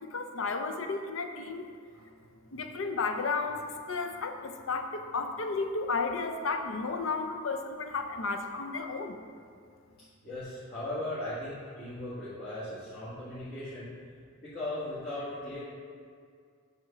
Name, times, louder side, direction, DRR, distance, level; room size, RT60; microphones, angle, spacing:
voice 1, 0.0-1.7 2.5-9.2, left 4 dB, 80° left, 6 dB, 0.6 m, -33 dB
voice 2, 10.2-13.9 14.4-15.6, left 1 dB, 50° left, -12 dB, 1.9 m, -38 dB
7.8 x 3.6 x 5.6 m, 2.1 s
head